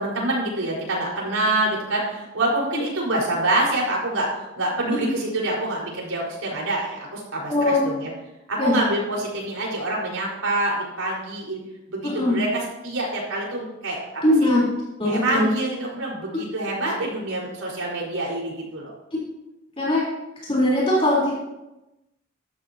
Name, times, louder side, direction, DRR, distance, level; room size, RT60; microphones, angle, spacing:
voice 1, 0.0-8.1 8.5-11.6 11.9-14.5 15.0-18.9, right 2 dB, 90° right, -3 dB, 4.9 m, -26 dB
voice 2, 7.5-7.9 8.6-8.7 12.0-12.4 14.2-14.6 15.0-15.4 19.8-20.0 20.4-21.4, left 1 dB, 25° left, -6 dB, 3.9 m, -20 dB
14.5 x 12.5 x 2.9 m, 0.98 s
head